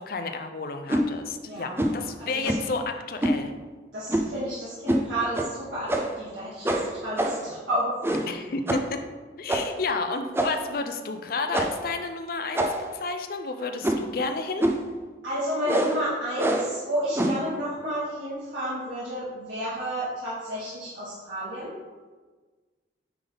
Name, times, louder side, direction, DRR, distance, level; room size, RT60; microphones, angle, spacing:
voice 1, 0.0-3.6 8.3-9.0 9.4-14.7, left 3 dB, 55° left, 7 dB, 0.5 m, -31 dB
sound 1, 0.9-1.1 1.8-2.0 2.4-2.7 3.2-3.4 4.1-4.4 4.9-5.0 5.3-5.5 5.9-6.2 6.6-7.5 8.0-8.4 8.7-8.9 9.5-9.8 10.3-10.7 11.5-11.9 12.5-13.0 13.8-14.1 14.6-14.9 15.7-16.0 16.4-16.7 17.1-17.5, right 1 dB, 15° right, 0.5 m, -26 dB
voice 2, 1.4-2.8 3.9-8.3 15.2-21.7, equal, 90° right, -11 dB, 2.2 m, -31 dB
9.4 x 3.5 x 3.9 m, 1.3 s
head